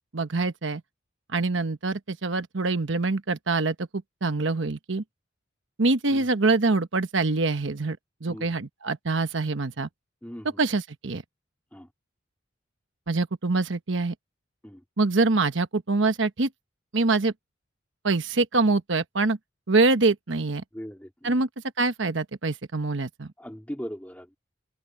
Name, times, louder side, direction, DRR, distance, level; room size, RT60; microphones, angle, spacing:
voice 1, 0.1-0.8 1.3-5.0 5.8-9.9 10.6-11.2 13.1-14.1 15.0-16.5 16.9-17.3 18.0-19.4 19.7-20.6 21.2-21.5 21.8-23.3, right 3 dB, 70° right, 1.1 m, -25 dB
voice 2, 20.7-21.4 23.4-24.4, equal, 5° left, 2.2 m, -39 dB
open air
head